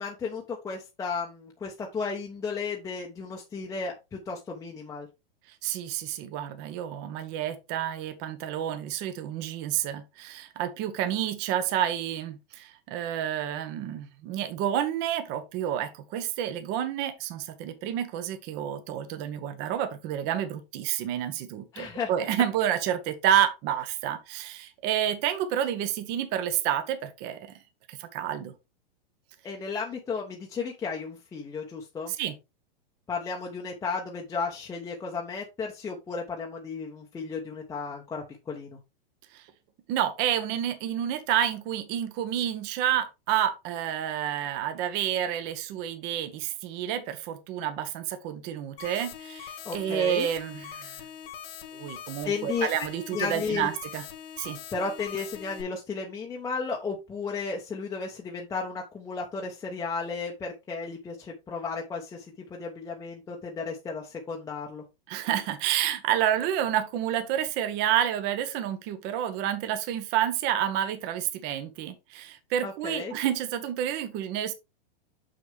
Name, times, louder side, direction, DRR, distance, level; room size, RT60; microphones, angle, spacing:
voice 1, 0.0-5.1 21.7-22.1 29.4-32.1 33.1-38.8 49.6-50.3 52.2-52.7 53.1-53.7 54.7-64.8 72.6-73.1, left 5 dB, 10° left, 1.0 m, -34 dB
voice 2, 5.6-27.5 27.9-28.5 32.1-32.4 39.3-39.4 39.9-51.0 51.7-54.0 54.4-54.6 65.1-74.5, right 10 dB, 35° right, 1.2 m, -29 dB
sound 1, 48.8-55.6, left 9 dB, 70° left, 2.1 m, -42 dB
6.3 x 6.3 x 3.5 m
hypercardioid pair, 145°, 29 cm